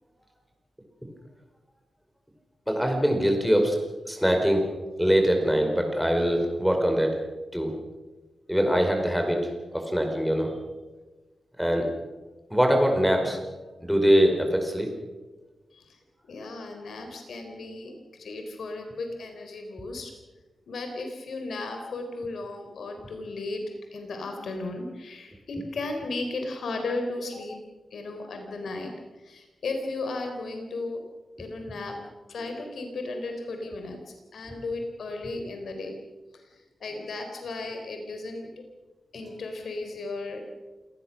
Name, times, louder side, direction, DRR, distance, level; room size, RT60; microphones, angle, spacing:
voice 1, 2.7-3.8 4.0-4.7 5.0-7.2 7.5-7.7 8.5-10.5 11.6-11.9 12.5-13.4 13.8-14.9, equal, ahead, 3 dB, 5.0 m, -23 dB
voice 2, 16.3-20.1 20.7-23.6 23.9-27.6 27.9-28.9 29.2-31.0 31.4-32.0 32.3-36.0 36.8-38.5 39.1-40.5, left 2 dB, 75° left, 4 dB, 3.9 m, -35 dB
28.0 x 18.5 x 6.4 m, 1.2 s
wide cardioid pair, 115°, 0 cm